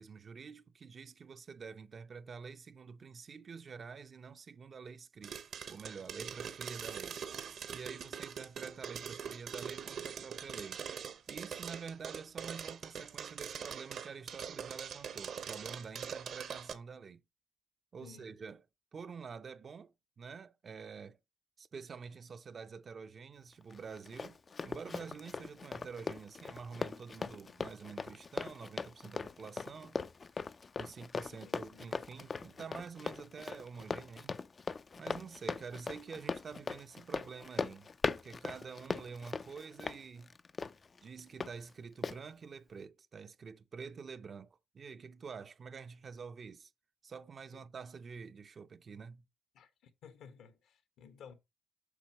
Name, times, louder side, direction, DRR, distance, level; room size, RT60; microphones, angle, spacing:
voice 1, 0.0-5.4 5.7-7.2 7.7-10.8 11.3-17.2 17.9-18.6 18.9-21.2 21.6-30.0 30.8-34.4 35.0-40.4 41.0-46.7 47.0-49.2, right 5 dB, 45° right, 0.6 m, -48 dB
sound 1, 5.2-16.7, right 7 dB, 65° right, 1.1 m, -43 dB
voice 2, 18.0-18.4 31.2-31.9 47.5-47.6 49.5-51.3, left 7 dB, 80° left, 1.4 m, -56 dB
Run, 23.7-41.5 42.0-42.2, left 4 dB, 35° left, 0.4 m, -40 dB
8.3 x 6.0 x 3.0 m
cardioid pair, 90°, 0 cm